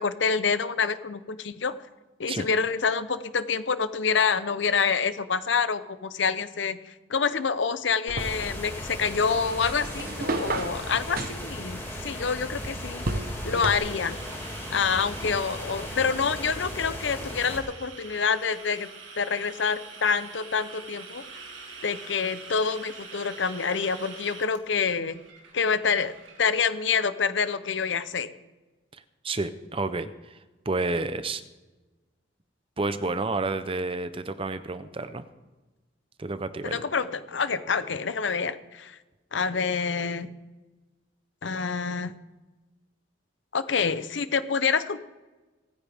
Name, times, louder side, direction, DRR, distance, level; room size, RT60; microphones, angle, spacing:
voice 1, 0.0-1.7 2.2-13.0 13.4-14.1 14.7-18.9 19.2-21.2 21.8-25.2 25.5-28.3 36.6-39.0 39.3-40.3 41.4-42.1 43.5-45.0, left 5 dB, 70° left, 13 dB, 0.7 m, -27 dB
sound 1, 8.1-13.8, right 2 dB, 50° right, 1.0 m, -34 dB
sound 2, 8.2-17.6, left 1 dB, 15° left, 2.4 m, -37 dB
sound 3, 13.0-26.4, right 4 dB, 80° right, 2.2 m, -45 dB
voice 2, 28.9-30.4 30.7-31.4 32.8-35.2 36.2-36.9, right 3 dB, 30° right, 12 dB, 0.7 m, -30 dB
26.0 x 9.7 x 3.6 m, 1.2 s
head